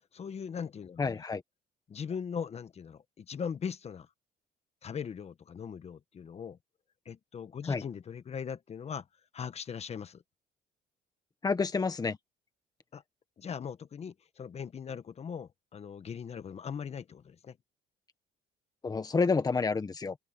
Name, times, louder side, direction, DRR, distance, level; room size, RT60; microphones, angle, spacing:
voice 1, 0.1-1.2 1.9-4.1 4.8-6.6 7.0-9.1 9.3-10.2 12.9-13.0 13.4-17.6, left 7 dB, 40° left, 1.4 m, -40 dB
voice 2, 1.0-1.4 7.7-7.8 11.4-12.2 18.8-20.1, left 4 dB, 20° left, 1.5 m, -29 dB
cardioid pair, 110°, 17 cm